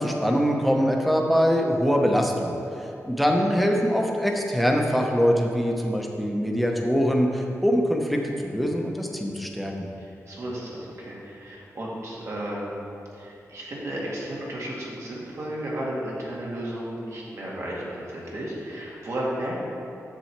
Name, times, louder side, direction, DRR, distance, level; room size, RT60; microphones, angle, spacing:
voice 1, 0.0-2.6 3.0-9.9, equal, ahead, 1 dB, 0.8 m, -23 dB
voice 2, 10.0-12.8 13.1-19.6, right 1 dB, 60° right, -5 dB, 1.9 m, -33 dB
7.1 x 7.0 x 4.6 m, 2.7 s
wide cardioid pair, 120°, 6 cm